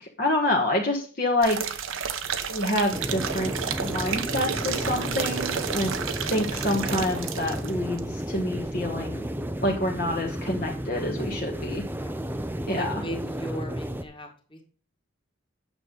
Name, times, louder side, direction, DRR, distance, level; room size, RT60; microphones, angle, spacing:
voice 1, 0.0-1.7 2.5-3.5 3.8-5.9 6.3-9.3 9.6-11.8 12.7-13.0, left 1 dB, 45° left, -1 dB, 1.4 m, -27 dB
sound 1, 1.4-7.7 8.0-8.1, right 7 dB, 70° right, 0.9 m, -31 dB
sound 2, 2.9-14.0, right 1 dB, 10° right, 0.5 m, -32 dB
voice 2, 11.6-12.2 12.7-14.6, equal, 25° left, 1 dB, 1.9 m, -38 dB
9.1 x 6.8 x 3.9 m, 0.41 s
head